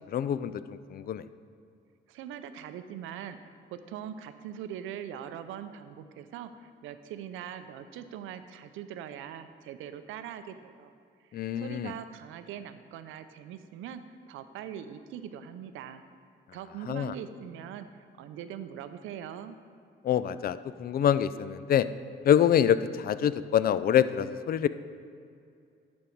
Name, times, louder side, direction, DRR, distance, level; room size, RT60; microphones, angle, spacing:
voice 1, 0.1-1.2 11.3-11.9 16.9-17.1 20.0-21.9 22.2-24.7, left 9 dB, 50° left, 14 dB, 0.4 m, -26 dB
voice 2, 2.1-10.9 11.3-16.0 16.5-19.6, right 9 dB, 90° right, 11 dB, 0.5 m, -42 dB
11.0 x 5.2 x 4.5 m, 2.4 s
cardioid pair, 90°, 20 cm